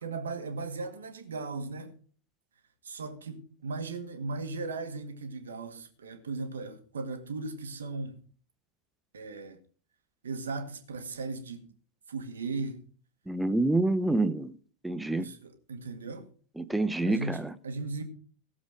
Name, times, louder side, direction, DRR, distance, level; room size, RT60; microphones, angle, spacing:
voice 1, 0.0-1.9 2.8-8.2 9.1-9.6 10.2-11.7 12.1-12.8 15.2-16.3 17.1-18.0, right 3 dB, 65° right, 1.9 m, -37 dB
voice 2, 13.3-14.5 14.8-15.3 16.6-17.5, right 2 dB, 5° right, 0.7 m, -27 dB
17.0 x 7.3 x 4.9 m
figure-of-eight pair, 90°, 0 cm